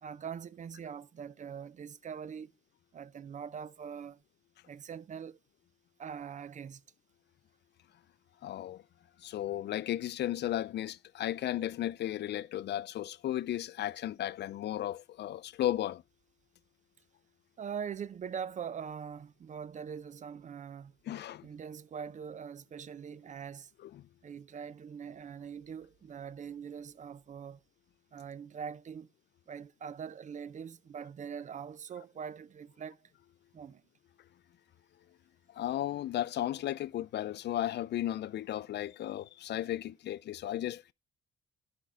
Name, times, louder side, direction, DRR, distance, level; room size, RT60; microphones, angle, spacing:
voice 1, 0.0-2.5 2.9-4.2 4.7-5.4 6.0-6.8 17.6-20.9 21.4-23.7 24.2-27.6 28.1-29.1 29.5-33.1 33.5-33.8, right 7 dB, 40° right, 0.4 m, -42 dB
voice 2, 8.4-8.8 9.2-16.0 21.1-21.5 23.9-24.0 35.5-40.9, left 12 dB, 60° left, 0.4 m, -35 dB
11.0 x 5.2 x 3.4 m
cardioid pair, 90°, 20 cm